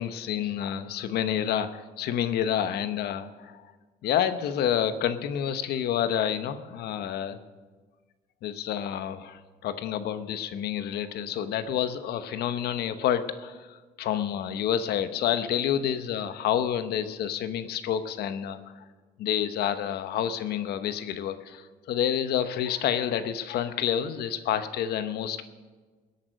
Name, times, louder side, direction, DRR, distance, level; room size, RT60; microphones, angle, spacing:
voice 1, 0.0-3.6 4.0-7.4 8.4-18.6 19.2-25.4, left 9 dB, 70° left, 11 dB, 1.0 m, -29 dB
20.5 x 8.6 x 6.5 m, 1.4 s
cardioid pair, 110°, 17 cm